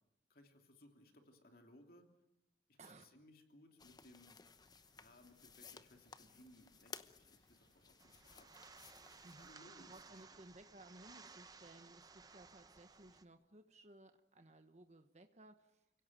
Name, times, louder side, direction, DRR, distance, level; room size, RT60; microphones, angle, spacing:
voice 1, 0.3-2.1 2.7-4.4 4.9-8.5 9.2-10.4, left 1 dB, 55° left, 4 dB, 2.9 m, -64 dB
voice 2, 2.8-3.2 9.2-16.0, right 2 dB, 40° right, 7 dB, 1.2 m, -60 dB
sound 1, 3.8-9.5, left 5 dB, 20° left, 0.9 m, -58 dB
sound 2, 4.4-10.3, right 6 dB, 85° right, 1.6 m, -80 dB
sound 3, 8.0-13.2, right 4 dB, 20° right, 0.9 m, -59 dB
29.5 x 17.0 x 9.2 m, 0.84 s
head